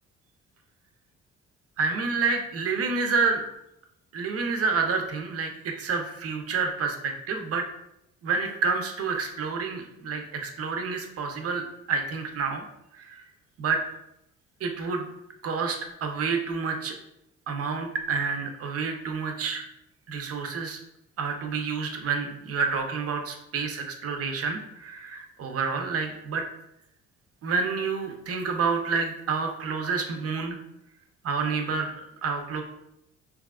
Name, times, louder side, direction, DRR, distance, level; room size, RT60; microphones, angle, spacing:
voice 1, 1.8-3.4 4.1-7.6 8.2-12.6 12.9-13.2 13.6-13.8 14.6-15.1 15.4-16.9 17.5-19.6 20.1-20.8 21.2-26.5 27.4-30.6 31.2-32.6, right 5 dB, 45° right, 4 dB, 0.6 m, -29 dB
3.3 x 2.4 x 2.3 m, 0.81 s
supercardioid pair, 60°, 32 cm